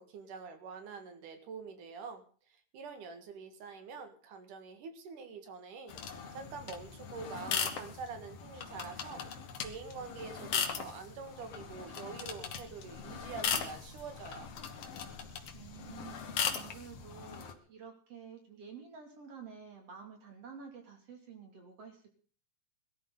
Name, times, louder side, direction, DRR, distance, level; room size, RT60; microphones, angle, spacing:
voice 1, 0.0-9.2 9.6-14.5, right 5 dB, 75° right, 7 dB, 3.3 m, -46 dB
sound 1, 5.9-17.5, left 7 dB, 55° left, 2.3 m, -39 dB
voice 2, 15.5-22.2, right 6 dB, 50° right, 3 dB, 3.4 m, -50 dB
22.0 x 13.0 x 3.9 m, 0.42 s
omnidirectional pair, 3.7 m